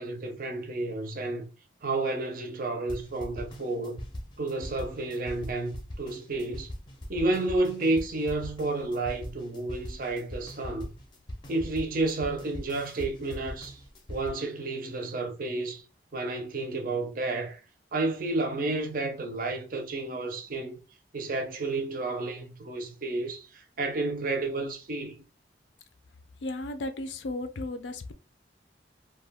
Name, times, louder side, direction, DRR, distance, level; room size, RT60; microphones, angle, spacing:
voice 1, 0.0-1.5 1.8-4.0 4.4-6.7 7.1-10.9 11.5-13.8 14.1-15.8 16.1-17.6 17.9-20.8 21.1-25.2, right 2 dB, 50° right, 0.5 m, -31 dB
sound 1, 2.9-14.3, equal, 25° left, 0.5 m, -41 dB
voice 2, 26.4-28.1, left 2 dB, 75° left, 0.4 m, -34 dB
2.3 x 2.2 x 3.4 m
head